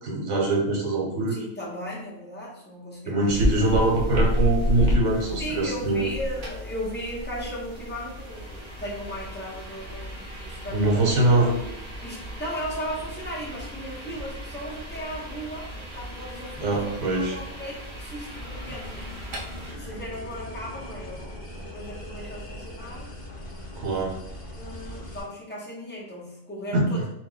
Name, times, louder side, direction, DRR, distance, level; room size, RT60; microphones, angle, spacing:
voice 1, 0.0-1.4 3.1-6.1 10.7-11.5 16.6-17.4 23.7-24.1 26.7-26.8, right 2 dB, 65° right, -1 dB, 1.1 m, -23 dB
voice 2, 1.3-3.4 5.4-11.0 11.4-11.5 12.0-19.1 19.5-23.1 24.5-27.0, equal, 15° left, -5 dB, 0.4 m, -36 dB
sound 1, 3.3-19.7, equal, 45° right, 0.7 m, -32 dB
sound 2, 18.4-25.2, left 1 dB, 40° left, 0.9 m, -40 dB
2.8 x 2.1 x 3.8 m, 0.85 s
omnidirectional pair, 1.4 m